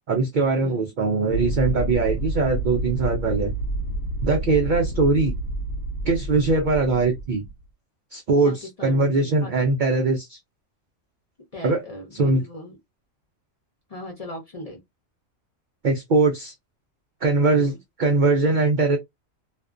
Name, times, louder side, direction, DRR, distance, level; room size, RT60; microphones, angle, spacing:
voice 1, 0.1-3.5 4.2-5.4 6.1-7.4 8.1-10.4 11.6-11.8 12.1-12.4 15.8-16.5 17.2-17.7 18.0-19.0, right 3 dB, 90° right, 0.4 m, -21 dB
sound 1, 1.3-7.5, right 2 dB, 85° left, 1.0 m, -29 dB
voice 2, 4.7-5.0 8.4-10.1 11.5-12.8 13.9-14.8 17.5-17.8, left 1 dB, 40° left, 0.6 m, -39 dB
2.4 x 2.2 x 2.4 m
omnidirectional pair, 1.4 m